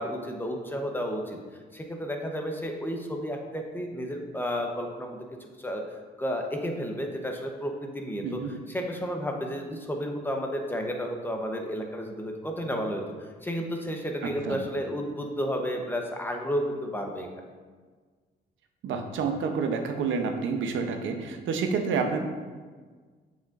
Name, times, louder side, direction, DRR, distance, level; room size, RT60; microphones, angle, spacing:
voice 1, 0.0-1.4 1.7-5.8 6.2-8.4 8.7-13.0 13.4-17.3, equal, 10° left, 2 dB, 0.9 m, -32 dB
voice 2, 14.2-14.6 18.8-22.2, right 5 dB, 75° right, 5 dB, 0.8 m, -29 dB
7.2 x 6.0 x 2.6 m, 1.5 s
cardioid pair, 90°, 20 cm